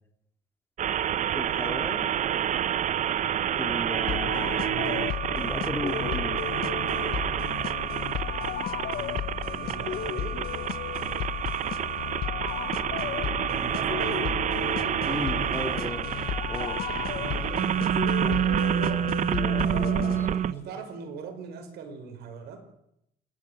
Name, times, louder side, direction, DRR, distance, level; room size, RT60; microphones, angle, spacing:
sound 1, 0.8-20.5, right 10 dB, 45° right, 0.7 m, -28 dB
voice 1, 1.3-2.1 3.6-4.4 5.3-6.7 15.0-16.0 16.5-16.8 18.2-18.4 19.3-20.5, left 2 dB, 15° left, 6 dB, 3.2 m, -36 dB
sound 2, 4.1-20.6, left 11 dB, 65° left, 0.9 m, -34 dB
voice 2, 9.6-10.4 13.5-14.5 14.9-16.0 17.0-19.1 20.4-22.7, right 5 dB, 75° right, 6 dB, 5.4 m, -40 dB
28.5 x 14.0 x 8.0 m, 0.80 s
cardioid pair, 110°, 17 cm